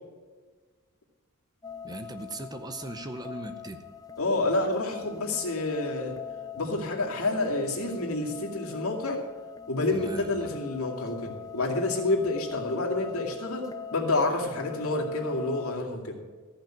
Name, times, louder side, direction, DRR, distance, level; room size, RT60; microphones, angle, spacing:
sound 1, 1.6-15.8, left 7 dB, 15° left, 0.5 m, -43 dB
voice 1, 1.8-3.8 9.9-10.5, right 2 dB, 20° right, 8 dB, 0.7 m, -39 dB
voice 2, 4.2-6.2 6.5-9.2 9.7-16.2, left 2 dB, 75° left, -1 dB, 2.4 m, -28 dB
14.5 x 5.9 x 8.8 m, 1.4 s
head